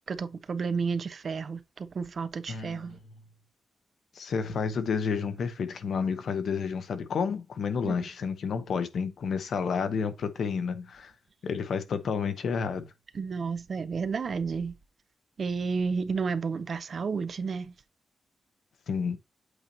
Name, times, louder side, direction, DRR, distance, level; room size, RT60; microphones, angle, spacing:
voice 1, 0.1-3.0 7.8-7.9 13.1-14.7 15.4-17.7, right 5 dB, 45° right, 0.6 m, -31 dB
voice 2, 2.5-3.0 4.1-11.1 11.4-12.9 18.9-19.2, left 6 dB, 70° left, 0.9 m, -30 dB
8.0 x 2.9 x 5.2 m
wide cardioid pair, 155°, 0 cm